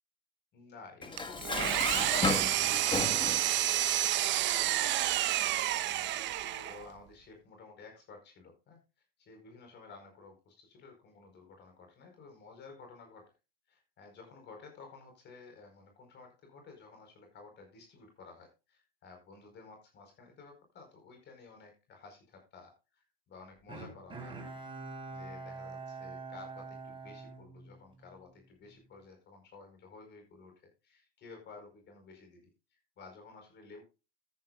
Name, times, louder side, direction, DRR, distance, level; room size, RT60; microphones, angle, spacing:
voice 1, 0.5-4.8 5.8-8.8 9.2-13.2 13.7-24.4 25.1-30.5 30.8-33.8, left 4 dB, 35° left, 3 dB, 4.7 m, -53 dB
Dishes pots and pans, 1.0-3.5, left 3 dB, 15° left, 1.7 m, -34 dB
Engine, 1.2-6.9, right 14 dB, 40° right, 1.0 m, -29 dB
Bowed string instrument, 23.7-28.2 28.6-28.7, right 3 dB, 15° right, 3.8 m, -45 dB
14.0 x 9.7 x 2.4 m, 0.29 s
hypercardioid pair, 100°, 29 cm